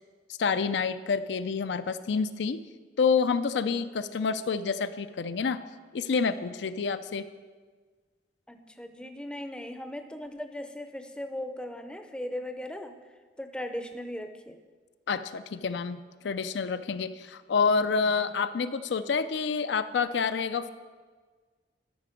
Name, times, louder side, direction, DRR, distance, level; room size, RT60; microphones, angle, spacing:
voice 1, 0.4-2.6 3.0-5.6 5.9-7.3 15.1-20.7, left 5 dB, 75° left, 11 dB, 0.4 m, -28 dB
voice 2, 8.5-12.9 13.4-14.6, left 1 dB, 5° left, 7 dB, 0.5 m, -38 dB
12.5 x 6.0 x 5.0 m, 1.5 s
head